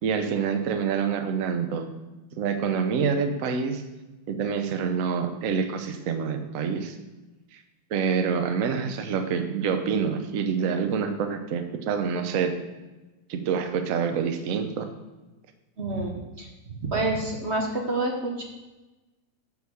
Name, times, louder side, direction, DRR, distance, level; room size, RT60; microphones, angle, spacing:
voice 1, 0.0-1.9 2.4-3.8 4.3-6.9 7.5-7.6 7.9-12.6 13.3-14.9, right 6 dB, 60° right, 7 dB, 0.9 m, -27 dB
voice 2, 15.8-16.1 16.4-18.4, right 2 dB, 40° right, 0 dB, 1.1 m, -28 dB
9.0 x 4.5 x 7.0 m, 1.1 s
omnidirectional pair, 2.3 m